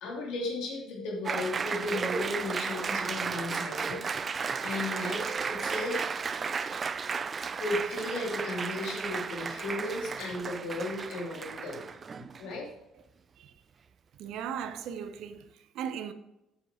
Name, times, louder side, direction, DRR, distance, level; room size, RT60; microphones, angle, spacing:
voice 1, 0.0-4.0 4.6-6.2 7.6-11.9 12.4-12.7, left 2 dB, 70° left, 2.6 m, -35 dB
Applause, 1.2-12.6, right 5 dB, 40° right, 0.5 m, -34 dB
voice 2, 14.2-16.1, right 8 dB, 70° right, 0.8 m, -37 dB
7.5 x 7.2 x 4.3 m
hypercardioid pair, 65°, 0 cm